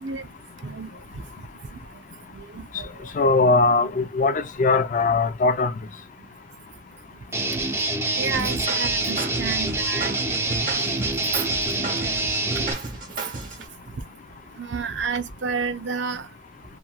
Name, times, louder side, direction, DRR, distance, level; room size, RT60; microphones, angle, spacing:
voice 1, 2.3-3.1 7.5-7.6 8.1-10.2 11.8-12.6 14.6-16.3, right 5 dB, 70° right, 0.5 m, -31 dB
voice 2, 3.1-5.7, left 3 dB, 45° left, 0.4 m, -20 dB
Guitar, 7.3-12.7, right 2 dB, 15° right, 0.6 m, -26 dB
sound 1, 8.3-13.7, right 3 dB, 45° right, 0.9 m, -34 dB
2.9 x 2.5 x 2.2 m
head